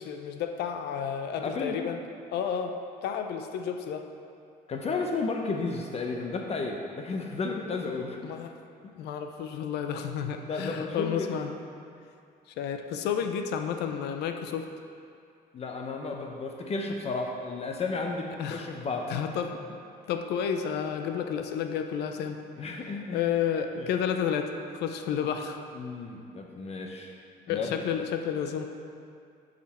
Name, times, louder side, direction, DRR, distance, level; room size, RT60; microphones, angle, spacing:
voice 1, 0.0-2.0 2.3-2.7 3.0-4.0 8.2-8.5 9.0-11.5 12.6-14.7 18.3-18.7 19.1-19.5 20.1-22.4 23.1-25.6 27.5-28.6, left 8 dB, 80° left, 6 dB, 0.6 m, -31 dB
voice 2, 1.4-1.8 4.7-8.3 10.5-11.3 15.5-19.1 22.6-23.2 23.8-23.9 25.7-27.1 27.5-27.8, left 3 dB, 40° left, 1 dB, 0.7 m, -33 dB
10.5 x 5.1 x 4.3 m, 2.4 s
cardioid pair, 110°, 17 cm